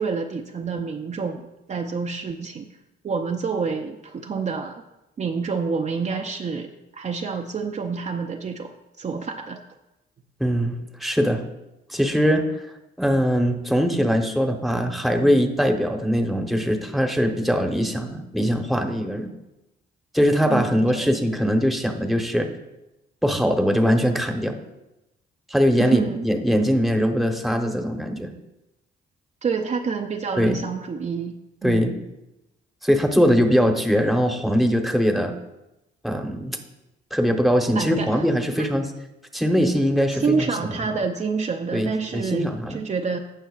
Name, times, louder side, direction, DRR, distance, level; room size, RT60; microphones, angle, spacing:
voice 1, 0.0-1.4 1.7-2.7 3.0-4.8 5.2-8.7 9.0-9.6 20.5-21.1 25.8-26.3 29.4-31.4 31.6-31.9 37.8-38.3 38.6-38.7 40.1-43.2, right 5 dB, 35° right, 3 dB, 0.6 m, -28 dB
voice 2, 10.4-10.7 11.0-11.4 11.9-12.5 13.0-19.3 20.1-22.5 23.2-24.6 25.5-28.3 30.4-30.6 31.6-31.9 32.8-35.3 36.0-36.6 37.1-38.9 39.3-40.3 41.7-42.8, equal, ahead, 4 dB, 1.0 m, -21 dB
16.5 x 5.5 x 2.4 m, 0.96 s
cardioid pair, 90°, 20 cm